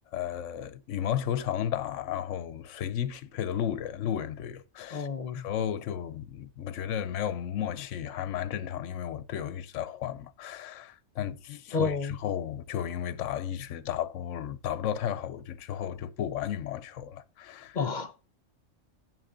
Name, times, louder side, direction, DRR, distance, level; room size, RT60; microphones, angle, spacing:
voice 1, 0.1-5.1 5.3-17.8, left 10 dB, 75° left, 1.0 m, -33 dB
voice 2, 4.9-5.5 11.7-12.1 17.7-18.1, left 4 dB, 45° left, 0.7 m, -30 dB
9.3 x 6.2 x 5.0 m
omnidirectional pair, 1.3 m